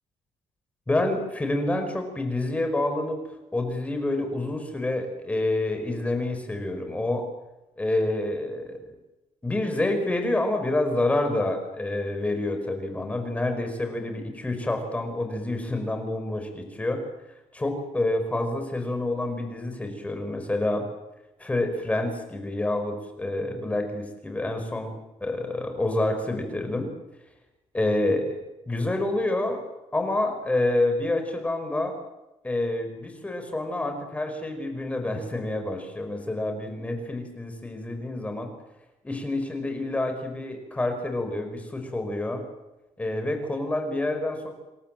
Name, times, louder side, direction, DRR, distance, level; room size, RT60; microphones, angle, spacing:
voice 1, 0.9-3.2 3.5-7.2 7.8-8.8 9.4-17.0 17.5-20.9 21.4-24.9 25.2-26.9 27.7-28.2 28.7-29.6 29.9-31.9 32.4-38.5 39.0-42.4 43.0-44.5, left 2 dB, 10° left, 5 dB, 5.3 m, -28 dB
28.0 x 22.5 x 7.8 m, 0.99 s
cardioid pair, 170°, 12 cm